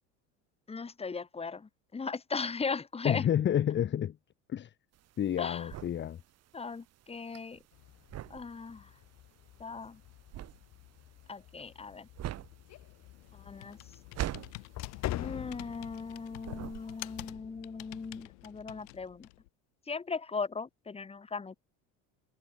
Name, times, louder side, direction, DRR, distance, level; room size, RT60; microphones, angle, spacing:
voice 1, 0.7-3.2 5.4-5.7 6.5-7.6 8.3-8.9 9.6-10.0 11.3-12.1 13.3-13.8 15.2-19.3 19.9-21.6, left 4 dB, 20° left, 2.4 m, -38 dB
voice 2, 3.0-4.2 4.5-4.7 5.2-6.2, left 10 dB, 35° left, 1.2 m, -29 dB
sound 1, 4.9-16.1 16.4-17.3, right 13 dB, 50° right, 3.3 m, -43 dB
sound 2, 7.7-18.6, left 14 dB, 50° left, 2.9 m, -46 dB
Computer keyboard, 12.5-19.5, left 25 dB, 90° left, 5.0 m, -49 dB
supercardioid pair, 115°, 33 cm